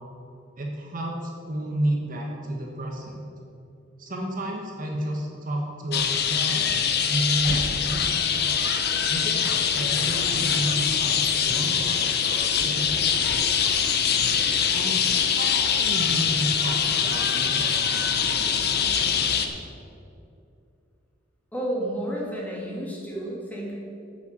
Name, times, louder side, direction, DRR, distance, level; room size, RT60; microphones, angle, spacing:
voice 1, 0.6-3.2 4.0-6.8 7.1-8.3 9.1-13.2 14.7-19.1, right 1 dB, 45° right, 0 dB, 1.3 m, -32 dB
sound 1, 5.9-19.5, left 7 dB, 55° left, 0.8 m, -23 dB
voice 2, 21.5-23.7, right 1 dB, 10° left, -4 dB, 2.2 m, -31 dB
9.0 x 7.5 x 7.1 m, 2.6 s
head